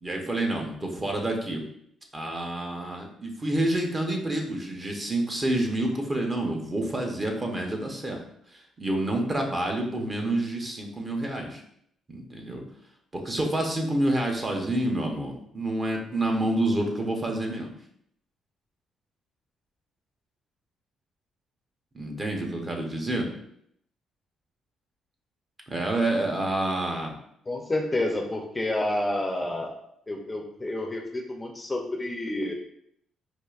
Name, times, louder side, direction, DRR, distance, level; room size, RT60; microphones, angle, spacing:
voice 1, 0.0-1.6 2.1-8.2 8.5-11.6 12.1-12.6 13.1-17.7 21.9-23.3 25.7-27.1, right 1 dB, 30° right, 2 dB, 0.8 m, -28 dB
voice 2, 27.5-29.8 30.1-32.5, left 1 dB, 20° left, 2 dB, 0.5 m, -29 dB
4.6 x 2.5 x 2.4 m, 0.70 s
cardioid pair, 90°, 0 cm